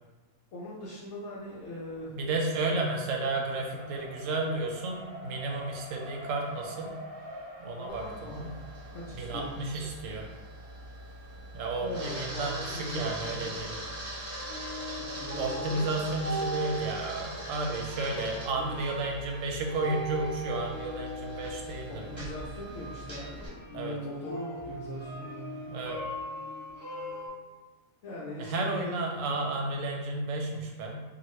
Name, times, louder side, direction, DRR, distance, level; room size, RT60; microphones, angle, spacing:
voice 1, 0.5-2.1 7.8-8.5 8.9-9.5 11.8-13.6 15.2-15.9 18.5-18.8 21.9-25.6 28.0-28.9, left 1 dB, 65° left, -6 dB, 0.9 m, -40 dB
Race car auto racing, 1.3-12.4, equal, 45° right, 0.4 m, -47 dB
voice 2, 2.1-6.9 7.6-8.5 9.1-10.3 11.5-13.7 15.4-22.2 23.7-24.0 25.7-26.0 28.4-31.0, right 2 dB, 70° right, 1 dB, 0.9 m, -32 dB
Camera, 7.9-23.5, right 1 dB, 25° right, 0.8 m, -42 dB
sound 1, 13.0-27.3, equal, 15° left, 0.9 m, -40 dB
2.9 x 2.4 x 3.1 m, 1.2 s
omnidirectional pair, 1.5 m